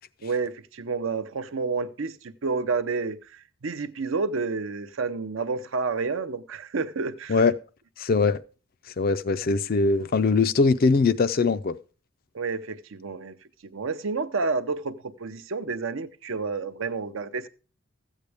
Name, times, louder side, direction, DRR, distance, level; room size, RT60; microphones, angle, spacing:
voice 1, 0.2-7.4 12.3-13.3 13.7-17.5, right 4 dB, 65° right, 0.6 m, -30 dB
voice 2, 8.0-8.4 9.0-11.7, left 4 dB, 45° left, 0.4 m, -21 dB
14.0 x 8.2 x 3.4 m
head